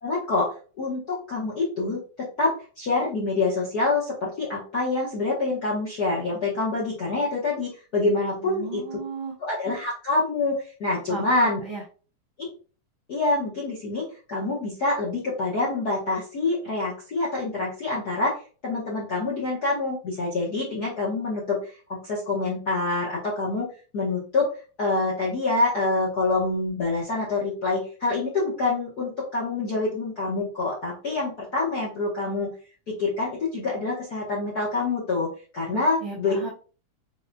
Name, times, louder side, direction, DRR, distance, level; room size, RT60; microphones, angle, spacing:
voice 1, 0.0-8.8 9.4-11.6 12.4-12.5 13.1-18.4 18.6-21.6 21.9-23.7 23.9-24.5 24.8-32.5 32.9-36.4, left 3 dB, 60° left, -6 dB, 1.0 m, -26 dB
voice 2, 8.4-9.3 11.1-11.8 35.7-36.5, right 4 dB, 90° right, -3 dB, 1.0 m, -35 dB
7.0 x 2.7 x 2.2 m, 0.37 s
omnidirectional pair, 3.4 m